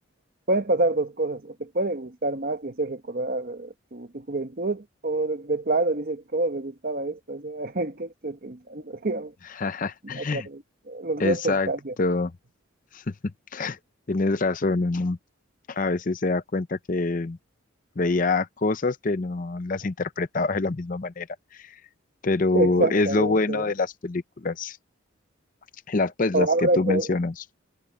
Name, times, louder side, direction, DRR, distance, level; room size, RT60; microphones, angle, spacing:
voice 1, 0.5-9.3 10.0-11.9 22.5-23.7 26.3-27.1, right 2 dB, 45° right, 1.0 m, -27 dB
voice 2, 9.5-10.5 11.2-11.7 12.0-12.3 12.9-13.0 13.5-13.8 14.1-15.2 15.7-17.4 18.0-21.3 21.5-21.7 22.2-24.8 25.9-27.4, left 3 dB, 40° left, 0.6 m, -25 dB
head